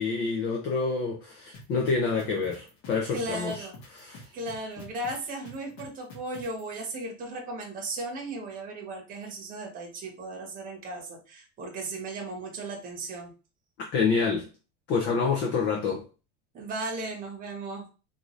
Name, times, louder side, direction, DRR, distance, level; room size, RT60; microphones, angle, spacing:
voice 1, 0.0-3.7 4.0-4.3 13.9-14.5 14.9-16.0, left 5 dB, 30° left, 0.4 m, -27 dB
sound 1, 1.5-6.6, left 2 dB, 50° left, 1.4 m, -46 dB
voice 2, 3.1-3.7 4.3-13.3 15.1-15.2 16.5-17.9, right 2 dB, 20° right, 1.0 m, -36 dB
3.7 x 2.5 x 3.0 m
supercardioid pair, 160°, 38 cm